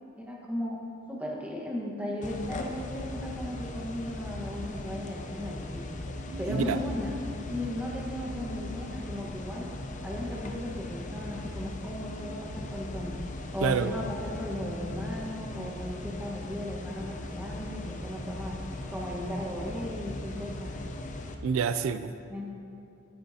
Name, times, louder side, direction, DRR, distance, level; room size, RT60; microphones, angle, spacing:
voice 1, 0.2-0.8 1.1-5.8 6.4-7.2 7.5-9.7 10.0-13.2 13.5-18.5 18.9-20.8 22.3-22.5, left 1 dB, 5° right, -3 dB, 1.3 m, -36 dB
sound 1, 2.2-21.4, left 2 dB, 40° left, 0.6 m, -39 dB
voice 2, 6.1-6.8 13.6-13.9 21.4-22.1, right 6 dB, 85° right, 11 dB, 0.3 m, -28 dB
14.0 x 9.2 x 2.8 m, 2.6 s
head